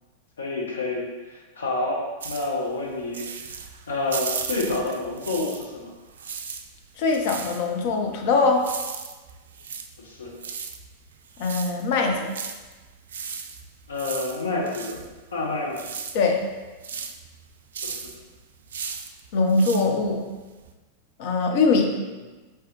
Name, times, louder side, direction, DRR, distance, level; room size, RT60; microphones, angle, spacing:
voice 1, 0.4-3.2 3.9-5.9 10.0-10.3 13.9-15.0 15.3-15.9 17.8-18.1, left 2 dB, 70° left, -1 dB, 0.9 m, -28 dB
sound 1, 2.2-5.8 6.1-20.7, right 6 dB, 65° right, 0.3 m, -36 dB
voice 2, 7.0-8.7 11.4-12.3 16.1-16.4 19.3-20.2 21.2-21.9, left 3 dB, 50° left, 2 dB, 0.6 m, -22 dB
4.7 x 3.3 x 3.0 m, 1.2 s
figure-of-eight pair, 90°, 0 cm